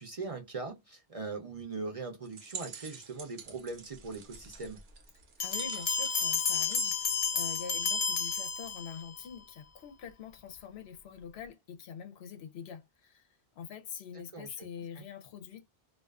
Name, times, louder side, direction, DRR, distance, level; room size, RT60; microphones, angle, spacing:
voice 1, 0.0-4.8 14.3-14.7 15.0-15.1, right 3 dB, 40° right, 0.5 m, -40 dB
sound 1, 2.2-7.9, right 6 dB, 75° right, 0.9 m, -48 dB
voice 2, 5.4-13.3 13.6-15.7, left 7 dB, 80° left, 0.9 m, -44 dB
Bell, 5.4-9.2, left 6 dB, 55° left, 0.4 m, -31 dB
2.4 x 2.4 x 2.3 m
omnidirectional pair, 1.1 m